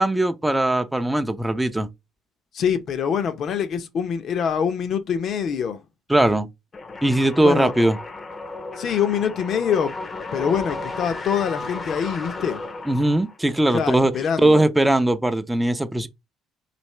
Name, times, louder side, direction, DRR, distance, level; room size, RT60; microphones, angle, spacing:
voice 1, 0.0-1.9 6.1-6.5 7.0-8.0 12.9-14.1 14.4-16.1, right 1 dB, 10° right, 0.5 m, -20 dB
voice 2, 2.5-5.8 7.4-7.7 8.8-9.9 10.3-12.6 13.7-14.6, left 7 dB, 60° left, 0.8 m, -24 dB
sound 1, 6.7-13.5, left 3 dB, 35° left, 0.7 m, -34 dB
4.2 x 2.7 x 3.2 m
supercardioid pair, 80°, 0 cm